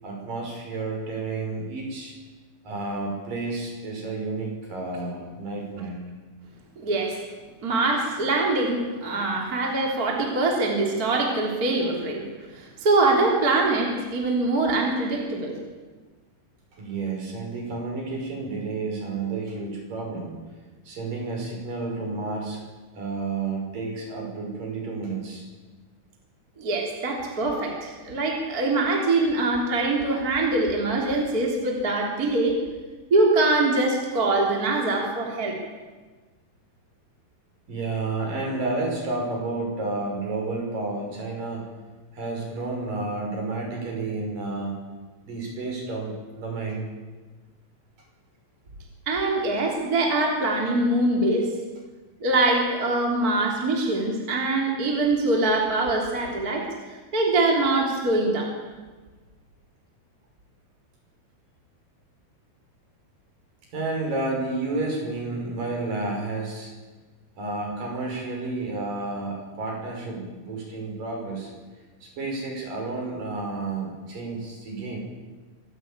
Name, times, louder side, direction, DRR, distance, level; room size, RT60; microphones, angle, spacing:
voice 1, 0.0-2.1 2.6-6.0 16.8-20.3 20.9-22.6 22.9-25.5 37.7-41.7 42.1-44.8 45.3-46.8 63.7-66.7 67.4-71.5 72.0-75.0, right 3 dB, 45° right, -1 dB, 7.2 m, -31 dB
voice 2, 6.8-7.2 7.6-12.2 12.5-15.5 26.6-32.6 33.1-35.6 49.1-51.5 52.2-58.5, right 2 dB, 20° right, 0 dB, 3.0 m, -23 dB
26.0 x 16.0 x 9.0 m, 1.3 s
omnidirectional pair, 5.6 m